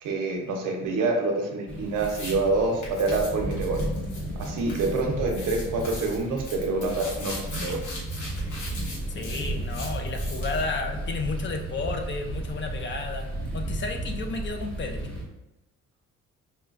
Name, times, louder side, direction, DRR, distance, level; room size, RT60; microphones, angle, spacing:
voice 1, 0.0-3.8 4.4-7.8, right 3 dB, 90° right, 1 dB, 0.8 m, -27 dB
sound 1, 1.7-15.2, right 1 dB, 5° left, 0.8 m, -34 dB
sound 2, 1.9-2.3 2.8-5.0 5.3-10.7, left 2 dB, 75° left, 1.2 m, -40 dB
voice 2, 9.1-13.3 13.5-15.1, left 4 dB, 40° left, 5 dB, 0.5 m, -32 dB
4.4 x 2.2 x 2.4 m, 1.0 s
cardioid pair, 90°, 30 cm